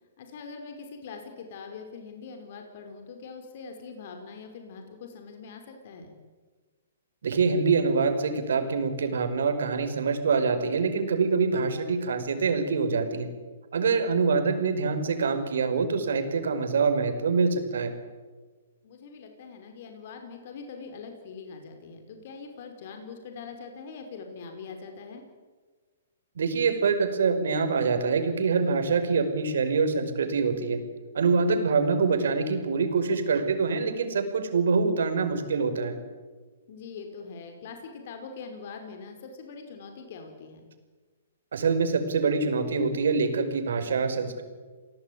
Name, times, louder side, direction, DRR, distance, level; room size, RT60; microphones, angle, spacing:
voice 1, 0.2-6.1 18.8-25.2 36.7-40.7, left 5 dB, 50° left, 5 dB, 5.2 m, -43 dB
voice 2, 7.2-13.3 13.7-17.9 26.4-30.8 31.1-36.0 41.5-44.4, right 4 dB, 75° right, 7 dB, 5.3 m, -25 dB
29.0 x 18.5 x 9.6 m, 1.4 s
hypercardioid pair, 155°, 0 cm